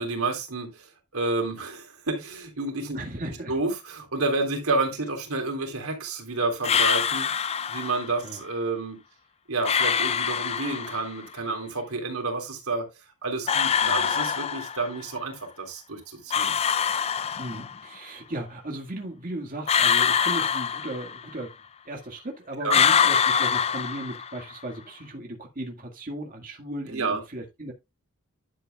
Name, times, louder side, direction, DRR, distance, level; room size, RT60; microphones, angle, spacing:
voice 1, 0.0-3.0 3.5-7.3 7.7-9.0 9.5-12.9 13.2-16.5 22.6-22.8 26.9-27.2, right 3 dB, 90° right, 3.6 m, -30 dB
voice 2, 2.9-3.5 8.2-8.4 13.8-14.1 17.4-21.6 21.9-27.7, right 1 dB, 40° right, 1.9 m, -36 dB
sound 1, 6.6-8.1 9.6-11.1 13.5-15.0 16.3-17.9 19.7-21.4 22.7-24.5, left 7 dB, 30° left, 0.4 m, -24 dB
11.0 x 8.1 x 2.3 m
head